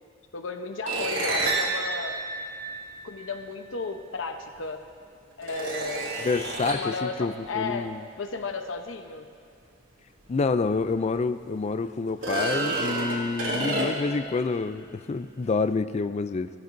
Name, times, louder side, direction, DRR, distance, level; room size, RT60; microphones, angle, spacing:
voice 1, 0.3-2.2 3.0-4.8 5.4-6.2 6.6-7.9 8.2-9.3, left 4 dB, 80° left, 6 dB, 0.9 m, -34 dB
sound 1, 0.8-3.3 4.5-4.6 5.4-7.0 10.2-10.3 10.8-10.9 12.1-14.2, right 2 dB, 85° right, 2.9 m, -29 dB
voice 2, 6.2-8.0 10.3-16.5, left 4 dB, 35° left, 11 dB, 0.4 m, -28 dB
17.5 x 13.0 x 2.6 m, 2.3 s
head